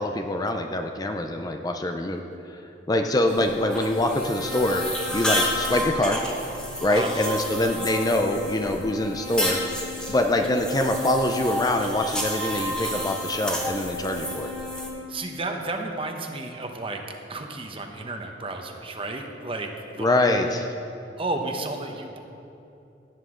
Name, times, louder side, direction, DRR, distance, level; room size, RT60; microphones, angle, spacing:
voice 1, 0.0-2.6 2.9-6.2 6.8-9.6 10.1-14.5 20.0-20.7, left 1 dB, 20° left, 4 dB, 0.5 m, -24 dB
sound 1, 3.3-14.9, equal, 5° left, 1.4 m, -30 dB
voice 2, 6.9-7.2 15.1-17.0 17.3-20.7 21.2-22.2, right 2 dB, 30° right, 4 dB, 0.9 m, -32 dB
17.0 x 9.1 x 3.8 m, 2.7 s
head